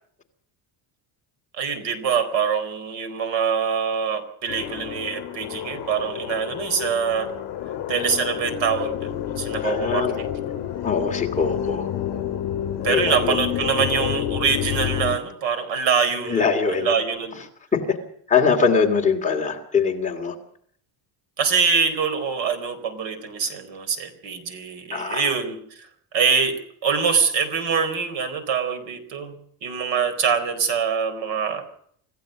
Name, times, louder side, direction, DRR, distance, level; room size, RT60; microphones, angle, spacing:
voice 1, 1.6-7.3 7.9-10.0 12.8-16.4 16.7-17.4 21.4-25.9 26.1-31.6, right 6 dB, 65° right, 10 dB, 4.3 m, -24 dB
sound 1, 4.5-15.2, left 11 dB, 55° left, 3.0 m, -29 dB
voice 2, 9.6-10.2 10.8-11.9 12.9-13.4 16.3-16.9 17.4-17.5 17.7-18.0 18.3-20.3 24.9-25.3, left 5 dB, 15° left, 1 dB, 2.6 m, -22 dB
26.5 x 15.5 x 6.5 m, 0.64 s
cardioid pair, 180°, 48 cm